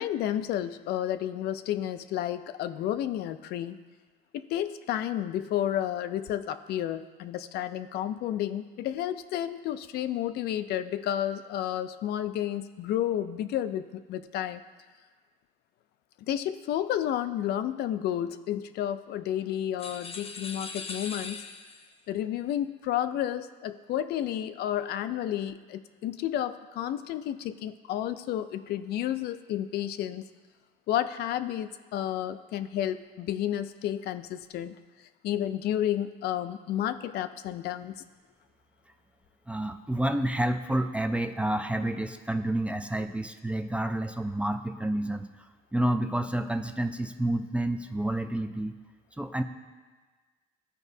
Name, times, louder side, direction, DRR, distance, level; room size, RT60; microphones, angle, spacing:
voice 1, 0.0-3.8 4.3-14.6 16.3-21.4 22.1-30.3 30.9-34.8 35.2-37.9, left 11 dB, 70° left, 11 dB, 0.4 m, -31 dB
sound 1, 19.8-22.0, left 4 dB, 35° left, 0.7 m, -40 dB
voice 2, 39.5-45.3 45.7-48.7 49.2-49.4, right 1 dB, 5° right, 7 dB, 0.4 m, -29 dB
14.5 x 4.8 x 2.7 m, 1.4 s
cardioid pair, 110°, 17 cm